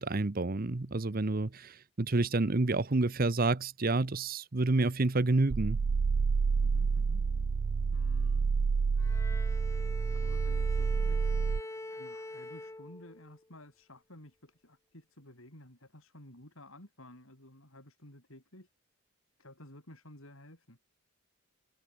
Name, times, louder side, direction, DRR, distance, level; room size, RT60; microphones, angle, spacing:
voice 1, 0.0-5.8, right 2 dB, 40° right, 0.8 m, -29 dB
sound 1, 5.5-11.6, right 5 dB, 70° right, 0.5 m, -29 dB
voice 2, 6.6-7.2 7.9-8.5 10.1-11.3 11.9-18.7 19.4-20.8, left 1 dB, 65° left, 7.7 m, -53 dB
Bowed string instrument, 9.0-13.4, left 2 dB, 15° left, 0.5 m, -44 dB
head